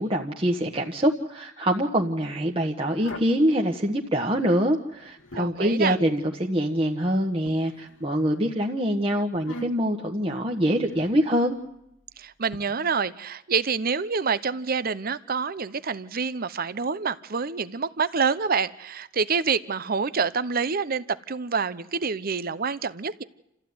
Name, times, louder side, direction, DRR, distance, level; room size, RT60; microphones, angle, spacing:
voice 1, 0.0-11.6, equal, 30° right, 0 dB, 1.4 m, -24 dB
sound 1, 2.8-3.4 4.9-5.7 7.5-8.4 9.3-10.0 10.9-11.3 12.5-12.6, left 1 dB, 80° left, 2.0 m, -41 dB
voice 2, 5.3-6.0 12.2-23.2, right 5 dB, 50° right, 15 dB, 0.8 m, -27 dB
28.5 x 15.0 x 9.6 m, 0.83 s
head